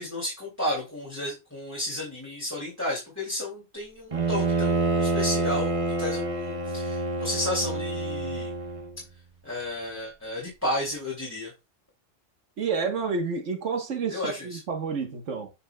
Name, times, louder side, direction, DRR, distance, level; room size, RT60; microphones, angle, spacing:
voice 1, 0.0-5.7 6.0-8.5 9.4-11.5 14.1-14.6, left 1 dB, 15° left, 2.5 m, -32 dB
Bowed string instrument, 4.1-9.0, right 3 dB, 35° right, 0.8 m, -27 dB
voice 2, 12.6-15.5, right 5 dB, 85° right, 1.5 m, -29 dB
8.1 x 5.7 x 2.2 m
omnidirectional pair, 1.2 m